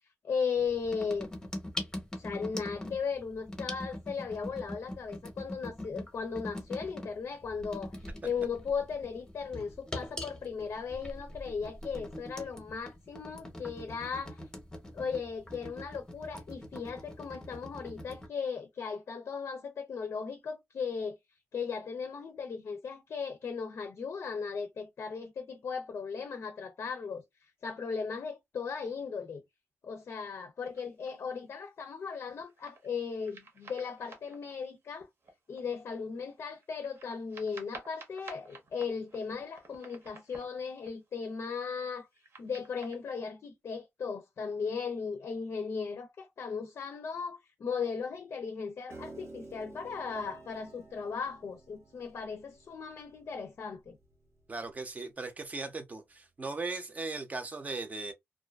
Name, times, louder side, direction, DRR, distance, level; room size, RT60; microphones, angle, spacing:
voice 1, 0.2-1.3 2.2-14.4 14.9-21.2 21.5-27.2 27.6-29.4 29.8-35.1 35.5-42.1 42.4-54.0, left 5 dB, 60° left, 0.5 m, -37 dB
sound 1, 0.6-18.3, left 1 dB, 15° left, 0.7 m, -43 dB
sound 2, 30.6-31.1 31.8-32.9 33.2-35.7 36.1-36.2 36.4-41.4 41.8-43.0, right 3 dB, 55° right, 0.8 m, -53 dB
Piano, 48.9-55.1, right 3 dB, 75° right, 1.1 m, -51 dB
voice 2, 54.5-58.1, right 3 dB, 30° right, 0.6 m, -38 dB
2.4 x 2.4 x 2.3 m
wide cardioid pair, 125°, 5 cm